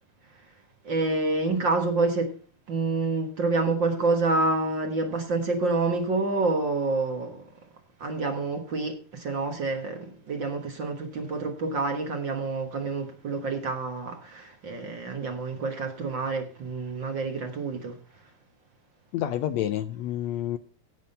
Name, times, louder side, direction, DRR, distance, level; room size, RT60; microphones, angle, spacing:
voice 1, 0.8-2.3 2.7-7.5 8.0-18.0, right 3 dB, 45° right, 1.8 m, -28 dB
voice 2, 19.1-20.6, left 11 dB, 75° left, 1.7 m, -29 dB
16.0 x 6.2 x 5.4 m
omnidirectional pair, 3.5 m